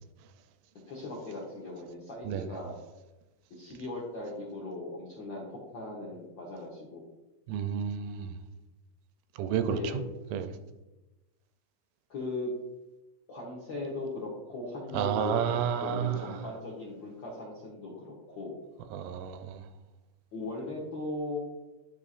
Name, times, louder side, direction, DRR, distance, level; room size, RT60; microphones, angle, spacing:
voice 1, 0.9-2.7 3.5-7.0 9.6-10.0 12.1-12.5 13.3-18.6 20.3-21.4, left 2 dB, 65° left, 1.1 m, -38 dB
voice 2, 7.5-8.4 9.4-10.0 10.3-10.5 14.9-16.4 18.9-19.6, right 8 dB, 85° right, 2.1 m, -31 dB
11.0 x 4.5 x 2.5 m
omnidirectional pair, 3.7 m